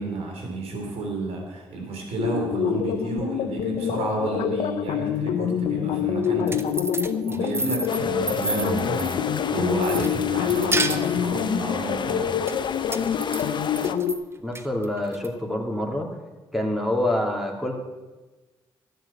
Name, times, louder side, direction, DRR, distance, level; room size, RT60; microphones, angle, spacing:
voice 1, 0.0-6.8 7.2-12.3, right 3 dB, 80° right, 1 dB, 3.4 m, -31 dB
sound 1, 2.2-14.1, left 8 dB, 85° left, 0.8 m, -26 dB
sound 2, 6.2-9.5 9.8-11.4 12.5-14.2 14.6-15.3, right 2 dB, 25° right, 1.0 m, -30 dB
sound 3, 7.9-13.9, left 6 dB, 50° left, 0.8 m, -32 dB
voice 2, 14.4-16.1 16.5-17.7, left 1 dB, 5° right, 0 dB, 3.1 m, -26 dB
13.0 x 9.4 x 7.3 m, 1.2 s
supercardioid pair, 65°, 10 cm